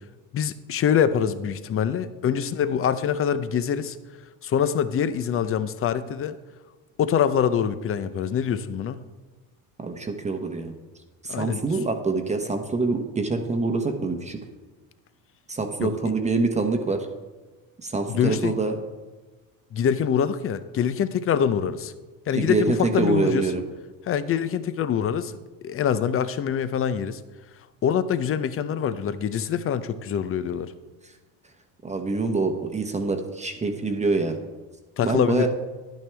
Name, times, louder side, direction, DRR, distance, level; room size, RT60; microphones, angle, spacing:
voice 1, 0.3-4.0 4.4-6.4 7.0-9.0 11.3-11.6 15.8-15.9 18.1-18.5 19.7-21.9 22.3-23.5 24.1-25.4 25.6-27.2 27.8-30.7 35.0-35.5, left 8 dB, 35° left, 14 dB, 0.6 m, -24 dB
voice 2, 9.8-10.7 11.2-14.4 15.5-17.1 17.8-18.8 22.3-23.6 31.8-34.4 35.0-35.5, right 3 dB, 15° right, 5 dB, 1.0 m, -25 dB
11.0 x 9.1 x 3.4 m, 1.2 s
supercardioid pair, 100°, 39 cm